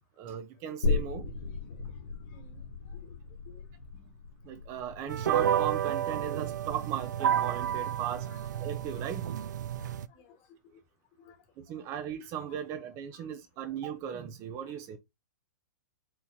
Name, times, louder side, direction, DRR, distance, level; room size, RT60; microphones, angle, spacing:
voice 1, 0.2-1.3 4.4-8.3 8.6-9.3 11.6-15.0, right 9 dB, 30° right, 0.6 m, -37 dB
sound 1, 0.8-8.1 8.5-8.6, left 4 dB, 75° left, 1.0 m, -36 dB
sound 2, 5.1-10.1, right 10 dB, 75° right, 0.4 m, -31 dB
voice 2, 9.8-10.4 11.2-11.4 11.7-11.8 12.5-12.8 13.1-13.2, left 5 dB, 35° left, 1.5 m, -57 dB
4.5 x 3.6 x 2.7 m
hypercardioid pair, 145°, 10 cm